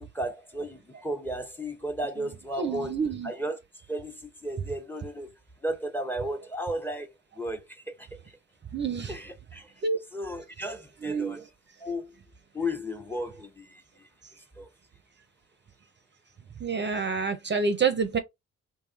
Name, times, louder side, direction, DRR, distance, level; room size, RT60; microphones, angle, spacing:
voice 1, 0.0-2.9 3.2-5.3 5.6-7.1 7.4-8.4 9.1-9.7 10.1-11.4 11.8-12.1 12.5-14.1 14.6-14.7, equal, 5° left, 0.6 m, -34 dB
voice 2, 2.5-3.3 8.7-9.1 9.8-10.0 11.0-11.4 16.6-18.2, right 5 dB, 35° right, 0.5 m, -28 dB
2.8 x 2.3 x 2.4 m
hypercardioid pair, 45°, 34 cm